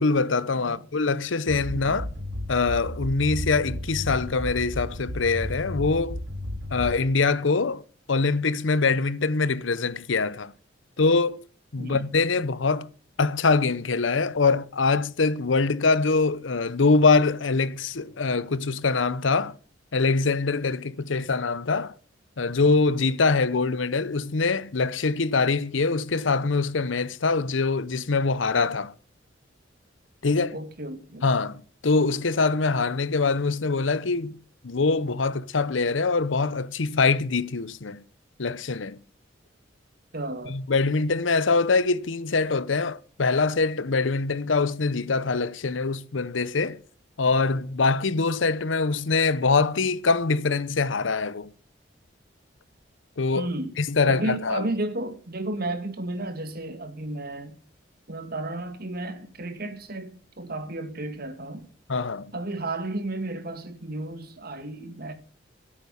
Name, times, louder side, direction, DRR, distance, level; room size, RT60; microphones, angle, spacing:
voice 1, 0.0-2.1 2.5-6.2 6.7-10.5 11.0-11.4 11.7-12.9 13.2-19.6 19.9-22.0 22.4-28.9 30.2-30.6 31.2-34.3 34.6-38.0 38.4-39.0 40.5-46.8 47.2-51.5 53.2-53.5 53.8-54.7 61.9-62.3, left 4 dB, 90° left, 0.8 m, -24 dB
sound 1, 1.5-7.3, equal, 90° right, 2.7 m, -33 dB
voice 2, 1.7-2.1 11.8-12.0 30.5-31.3 40.1-40.6 53.3-53.8 54.1-57.6 58.1-60.1 60.4-61.7 62.3-65.1, right 2 dB, 55° right, 2.1 m, -33 dB
14.5 x 8.7 x 7.0 m
head